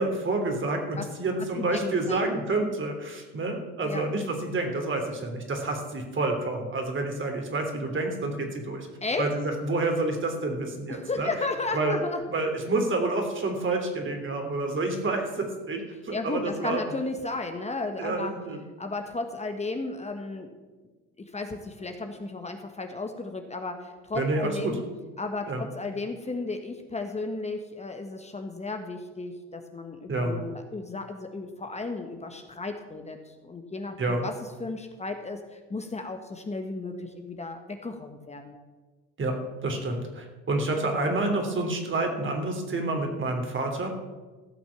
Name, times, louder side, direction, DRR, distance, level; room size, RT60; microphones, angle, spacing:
voice 1, 0.0-8.9 9.2-11.3 11.7-12.0 12.3-16.8 18.0-18.6 24.1-24.8 25.5-25.7 30.1-30.4 34.0-34.3 39.2-39.3 39.6-43.9, right 2 dB, 40° right, 3 dB, 3.2 m, -28 dB
voice 2, 1.6-2.2 3.8-4.1 9.0-9.3 10.9-12.2 16.1-18.3 18.8-20.5 21.3-24.8 25.2-34.3 34.6-38.5, left 3 dB, 20° left, 5 dB, 1.5 m, -34 dB
15.5 x 6.1 x 7.1 m, 1.3 s
hypercardioid pair, 70°, 31 cm